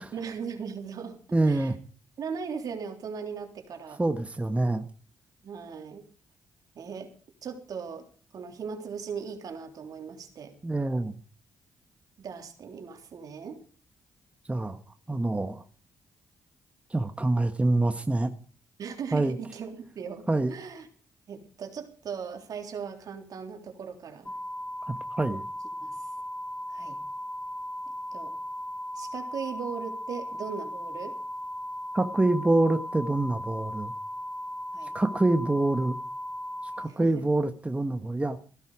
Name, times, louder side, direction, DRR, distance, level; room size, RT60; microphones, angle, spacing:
voice 1, 0.1-1.2 1.5-1.7 2.2-4.0 5.4-6.1 6.8-7.1 7.4-8.1 8.3-10.5 12.2-13.6 15.1-15.2 18.8-20.9 21.3-24.3 25.8-26.1 26.7-27.0 28.1-28.3 29.0-31.2 34.7-34.9 36.8-37.2, right 6 dB, 65° right, 4 dB, 3.5 m, -38 dB
voice 2, 1.3-1.8 4.0-4.9 10.6-11.2 14.5-14.8 15.1-15.6 16.9-18.3 19.1-19.3 20.3-20.5 24.9-25.4 31.9-33.9 34.9-36.0 36.8-38.4, right 2 dB, 20° right, 8 dB, 1.4 m, -26 dB
sound 1, 24.3-36.9, equal, 20° left, 2.4 m, -37 dB
16.0 x 13.0 x 5.0 m, 0.40 s
supercardioid pair, 55°, 7 cm